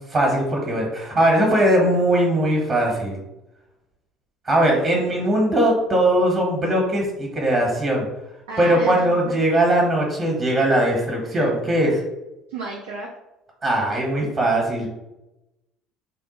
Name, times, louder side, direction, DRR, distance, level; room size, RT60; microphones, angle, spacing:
voice 1, 0.1-3.2 4.4-8.1 8.6-12.0 13.6-14.9, right 1 dB, 35° right, -2 dB, 1.0 m, -20 dB
voice 2, 8.5-9.3 12.5-13.1, right 2 dB, 80° right, -4 dB, 0.5 m, -32 dB
3.3 x 2.1 x 3.0 m, 0.95 s
hypercardioid pair, 60°, 0 cm